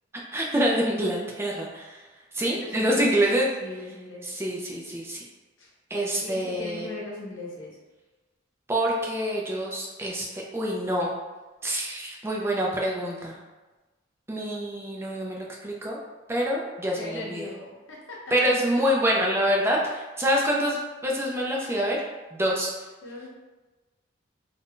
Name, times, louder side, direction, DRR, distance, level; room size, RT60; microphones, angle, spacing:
voice 1, 0.3-2.0 2.3-3.5 4.2-5.2 5.9-6.9 8.7-11.1 11.6-13.4 14.3-16.0 16.3-17.5 18.3-22.0 22.3-22.9, equal, 15° right, -2 dB, 0.4 m, -26 dB
voice 2, 2.4-3.2 3.6-4.4 5.6-5.7 6.2-7.8 17.0-18.5 23.0-23.3, left 2 dB, 80° left, -3 dB, 0.8 m, -39 dB
2.5 x 2.2 x 3.6 m, 1.2 s
head